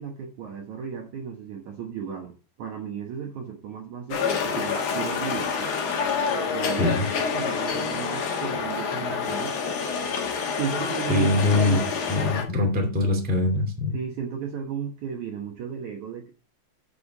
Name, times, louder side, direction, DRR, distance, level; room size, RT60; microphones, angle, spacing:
voice 1, 0.0-5.7 6.5-7.0 7.3-9.6 10.5-11.8 13.9-16.3, right 7 dB, 65° right, 2 dB, 2.0 m, -34 dB
sound 1, 4.1-12.4, left 5 dB, 55° left, 2.2 m, -27 dB
voice 2, 6.7-7.1 11.1-11.8 12.1-13.9, left 2 dB, 5° right, 0 dB, 1.5 m, -23 dB
7.6 x 6.9 x 4.8 m, 0.33 s
omnidirectional pair, 4.6 m